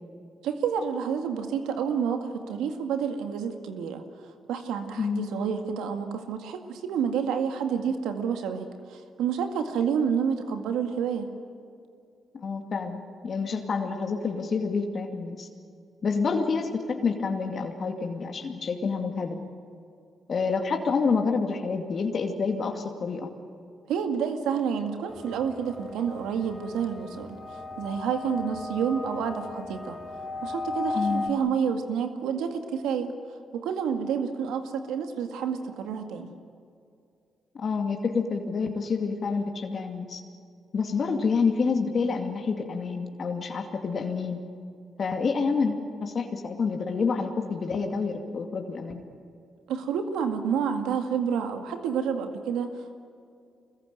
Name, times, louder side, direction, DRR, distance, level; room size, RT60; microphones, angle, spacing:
voice 1, 0.4-4.0 4.5-11.3 23.9-30.0 30.4-33.1 33.5-36.3 49.7-52.7, right 7 dB, 85° right, 6 dB, 2.0 m, -29 dB
voice 2, 5.0-5.3 12.3-15.5 16.0-19.4 20.3-23.3 30.9-31.3 37.6-40.2 40.7-44.4 45.0-49.0, left 5 dB, 55° left, 4 dB, 2.3 m, -28 dB
sound 1, 25.1-31.3, left 3 dB, 25° left, 3.8 m, -36 dB
24.5 x 21.0 x 9.3 m, 2.5 s
supercardioid pair, 55°, 0 cm